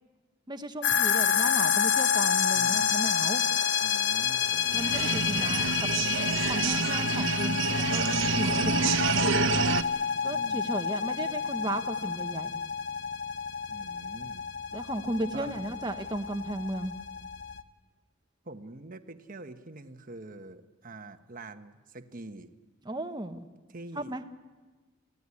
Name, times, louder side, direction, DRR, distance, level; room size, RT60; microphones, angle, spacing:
voice 1, 0.5-3.4 4.7-5.7 6.4-9.5 10.2-12.6 14.7-17.0 22.8-23.5 24.0-24.2, right 1 dB, 20° right, 8 dB, 1.2 m, -35 dB
sound 1, 0.8-17.6, left 7 dB, 60° left, 0.9 m, -29 dB
voice 2, 2.5-3.1 3.8-4.5 4.9-5.7 10.2-10.8 13.7-14.5 15.3-15.6 18.4-22.5 23.7-24.2, right 2 dB, 40° right, 8 dB, 1.2 m, -45 dB
sound 2, 4.5-9.8, right 5 dB, 70° right, 0.9 m, -28 dB
27.0 x 16.5 x 9.7 m, 1.3 s
head